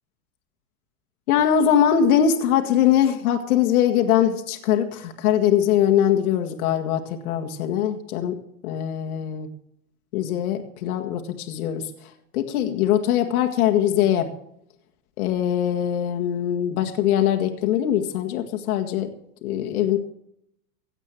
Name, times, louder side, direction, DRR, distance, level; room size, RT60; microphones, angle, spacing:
voice 1, 1.3-8.4 8.6-9.5 10.1-14.3 15.2-19.1 19.4-20.0, left 10 dB, 70° left, 4 dB, 1.8 m, -22 dB
16.5 x 8.1 x 7.5 m, 0.74 s
hypercardioid pair, 125°, 45 cm